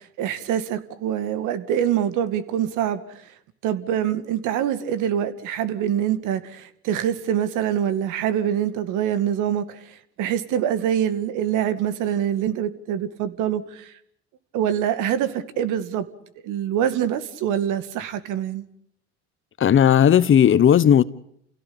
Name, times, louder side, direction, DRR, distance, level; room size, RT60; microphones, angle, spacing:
voice 1, 0.2-3.0 3.6-9.6 10.2-13.8 14.5-16.1 16.4-18.6, right 10 dB, 60° right, 2.3 m, -24 dB
voice 2, 19.6-21.0, left 9 dB, 35° left, 1.1 m, -15 dB
29.5 x 16.5 x 8.8 m
hypercardioid pair, 75°, 34 cm